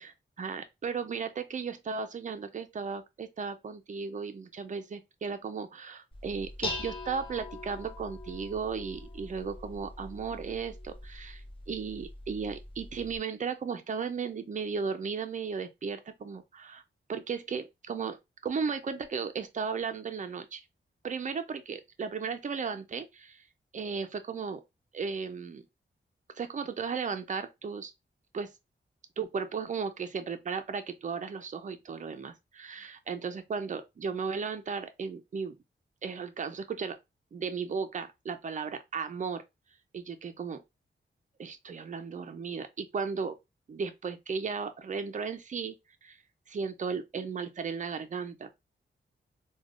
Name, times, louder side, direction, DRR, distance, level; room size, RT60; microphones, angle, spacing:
voice 1, 0.4-16.8 17.1-20.6 21.0-23.4 23.7-24.6 24.9-25.6 26.4-27.9 28.3-28.5 29.2-35.6 36.0-37.0 37.3-39.4 39.9-40.6 41.4-43.4 43.7-45.8 46.0-46.2 46.5-48.5, right 5 dB, 40° right, 0.4 m, -35 dB
Dishes pots and pans, 6.1-13.2, left 2 dB, 25° left, 0.6 m, -42 dB
3.3 x 2.2 x 2.3 m
wide cardioid pair, 120°, 20 cm